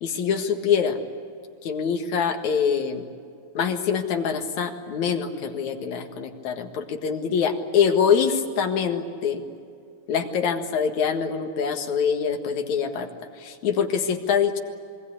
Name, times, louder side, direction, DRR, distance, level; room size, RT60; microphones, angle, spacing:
voice 1, 0.0-1.0 1.6-3.0 3.5-9.4 10.1-13.1 13.4-14.6, left 7 dB, 75° left, 5 dB, 3.0 m, -24 dB
27.0 x 21.5 x 8.6 m, 2.3 s
omnidirectional pair, 3.4 m